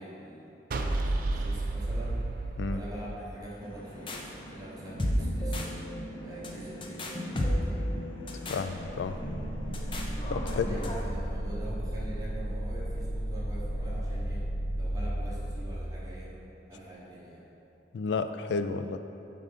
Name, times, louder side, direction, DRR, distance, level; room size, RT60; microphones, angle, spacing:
voice 1, 0.0-2.2 2.7-5.7 6.2-7.7 10.4-14.5 14.7-16.4 16.7-17.4, right 1 dB, 20° right, -6 dB, 1.0 m, -44 dB
sound 1, 0.7-3.9, right 2 dB, 50° right, 0.4 m, -31 dB
sound 2, 3.6-11.0, equal, 30° left, 0.6 m, -34 dB
voice 2, 8.5-9.2 10.3-10.9 17.9-19.0, left 4 dB, 75° left, 10 dB, 0.3 m, -31 dB
sound 3, 8.8-16.3, equal, 80° right, 0.8 m, -34 dB
7.4 x 3.9 x 5.2 m, 2.9 s
head